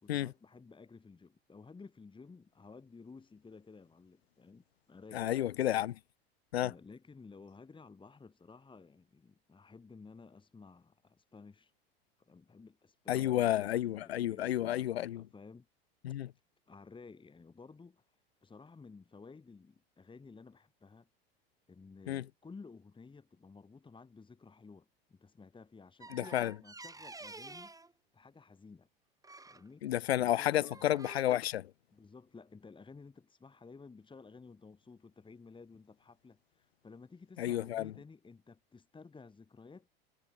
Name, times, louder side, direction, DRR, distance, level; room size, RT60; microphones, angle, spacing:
voice 1, 0.0-5.3 6.6-11.7 12.2-15.7 16.7-21.1 21.7-27.7 28.1-28.9 29.5-29.8 30.2-31.0 31.9-39.9, left 4 dB, 15° left, 2.7 m, -54 dB
voice 2, 5.1-6.0 6.5-6.7 13.1-15.2 16.0-16.3 22.1-22.2 26.1-26.5 29.8-31.7 37.4-37.9, left 13 dB, 85° left, 0.6 m, -31 dB
sound 1, 26.0-27.9 29.2-29.7 30.3-31.2, right 3 dB, 10° right, 6.0 m, -50 dB
hypercardioid pair, 85°, 30 cm